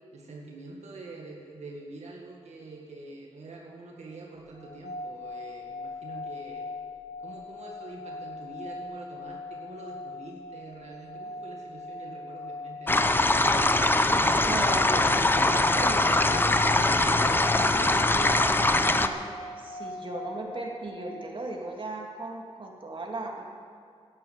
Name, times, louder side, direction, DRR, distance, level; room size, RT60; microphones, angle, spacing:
voice 1, 0.1-6.7 7.2-13.1, right 3 dB, 85° right, -1 dB, 1.8 m, -45 dB
sound 1, 4.5-21.7, left 2 dB, 80° left, 0.8 m, -41 dB
sound 2, 12.9-19.1, left 2 dB, 20° left, 0.7 m, -22 dB
voice 2, 14.5-19.2 19.6-23.4, right 2 dB, 50° right, 0 dB, 2.3 m, -37 dB
11.0 x 11.0 x 8.0 m, 2.3 s
cardioid pair, 60°, 11 cm